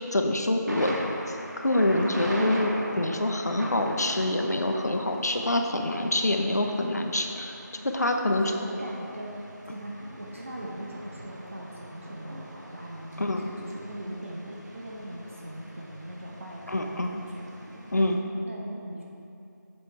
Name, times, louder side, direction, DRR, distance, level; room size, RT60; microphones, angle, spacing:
voice 1, 0.1-0.9 1.3-1.4 1.6-7.6 7.8-8.5 13.2-13.5 16.7-17.1 17.9-18.2, left 1 dB, 60° left, 4 dB, 0.8 m, -26 dB
Thunder, 0.7-18.1, equal, 70° right, 1.4 m, -40 dB
voice 2, 8.0-17.6 17.9-18.0 18.4-19.0, right 1 dB, 45° right, -3 dB, 1.0 m, -40 dB
7.6 x 6.8 x 4.5 m, 2.8 s
figure-of-eight pair, 175°, 10 cm